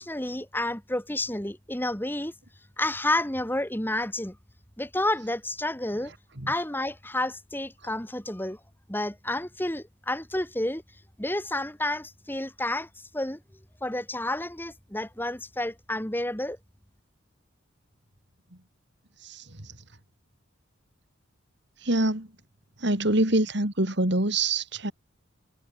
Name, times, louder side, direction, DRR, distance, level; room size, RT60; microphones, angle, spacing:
voice 1, 0.0-2.3 2.8-4.4 4.8-6.1 6.5-8.6 8.9-10.8 11.2-13.4 13.8-16.6, left 1 dB, 10° left, 2.3 m, -30 dB
voice 2, 21.8-22.3 22.8-24.9, right 2 dB, 55° right, 3.4 m, -25 dB
head